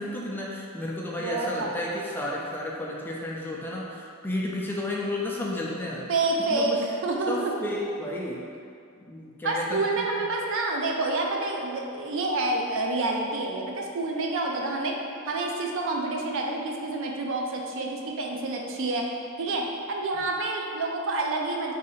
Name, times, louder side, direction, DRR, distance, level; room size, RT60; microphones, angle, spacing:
voice 1, 0.0-6.1 6.5-6.8 7.3-8.4 9.1-9.7 10.1-10.3, left 1 dB, 10° left, -4 dB, 0.3 m, -32 dB
voice 2, 1.2-1.7 6.1-7.5 9.4-14.9 15.3-19.0 19.4-21.7, right 2 dB, 60° right, 1 dB, 0.4 m, -28 dB
2.8 x 2.7 x 4.1 m, 2.4 s
head